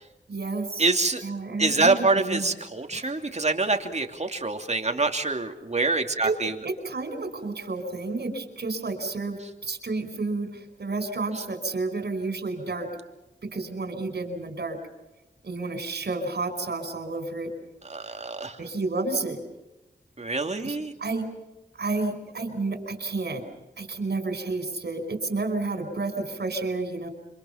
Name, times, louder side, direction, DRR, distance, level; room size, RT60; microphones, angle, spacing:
voice 1, 0.3-0.9 1.2-2.5 2.9-3.1 6.2-6.3 6.6-12.9 13.4-14.8 15.4-17.5 18.6-19.4 20.6-21.3 21.7-23.4 23.8-27.1, right 3 dB, 70° right, 7 dB, 5.0 m, -30 dB
voice 2, 0.8-1.2 1.6-6.5 11.3-11.4 17.8-18.6 20.2-20.9, right 3 dB, 40° right, 5 dB, 2.9 m, -25 dB
27.0 x 25.5 x 5.9 m, 1.0 s
cardioid pair, 45°, 18 cm